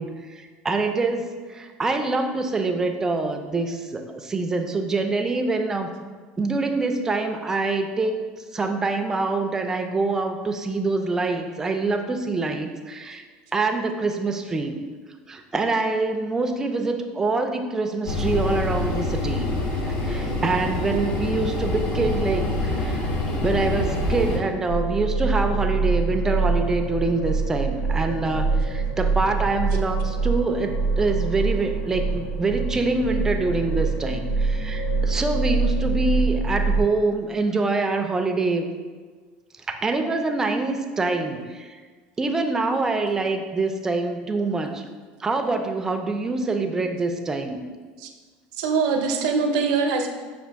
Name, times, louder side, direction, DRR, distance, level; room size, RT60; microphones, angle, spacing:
voice 1, 0.0-5.9 6.4-8.2 8.5-13.2 13.5-14.8 15.3-19.5 19.8-23.1 23.4-38.7 39.8-41.8 42.2-44.8 45.2-47.6, right 3 dB, 15° right, 5 dB, 0.3 m, -25 dB
sound 1, 18.1-24.4, left 2 dB, 45° left, 0.7 m, -26 dB
sound 2, 24.7-36.8, right 3 dB, 85° left, 0.6 m, -24 dB
voice 2, 48.6-50.1, right 5 dB, 80° right, 4 dB, 0.5 m, -23 dB
5.9 x 2.5 x 3.4 m, 1.5 s
cardioid pair, 145°, 4 cm